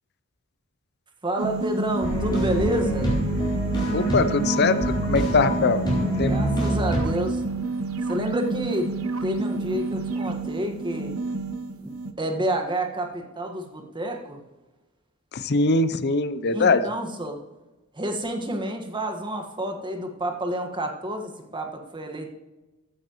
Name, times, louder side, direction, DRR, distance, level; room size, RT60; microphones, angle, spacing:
voice 1, 1.2-3.2 6.2-7.4 8.1-8.9 9.2-11.2 11.8-11.9 12.2-14.4 16.5-17.4 17.9-22.3, right 1 dB, 20° right, 4 dB, 1.5 m, -29 dB
sound 1, 1.4-12.1, right 3 dB, 85° right, 1.0 m, -29 dB
sound 2, 2.0-7.0, equal, 20° left, 4.3 m, -26 dB
voice 2, 3.9-5.8 6.2-6.3 15.3-16.8, left 3 dB, 50° left, 12 dB, 0.6 m, -22 dB
15.0 x 9.7 x 3.1 m, 1.1 s
head